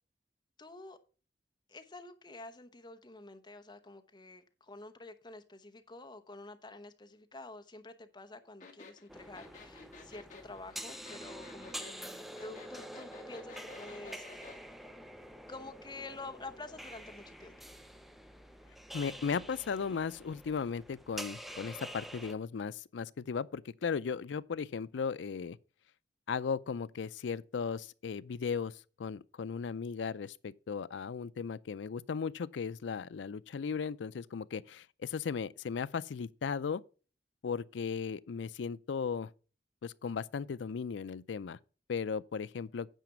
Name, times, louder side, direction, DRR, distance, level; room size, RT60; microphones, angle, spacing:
voice 1, 0.6-1.0 1.7-14.7 15.5-17.6, left 2 dB, 25° left, 0.9 m, -49 dB
sound 1, 8.6-14.6, left 4 dB, 45° left, 2.2 m, -52 dB
sound 2, 9.1-22.3, equal, ahead, 0.6 m, -47 dB
voice 2, 18.9-25.6 26.3-36.8 37.4-39.3 39.8-41.6 41.9-42.9, left 6 dB, 85° left, 0.4 m, -36 dB
9.2 x 5.0 x 5.8 m
head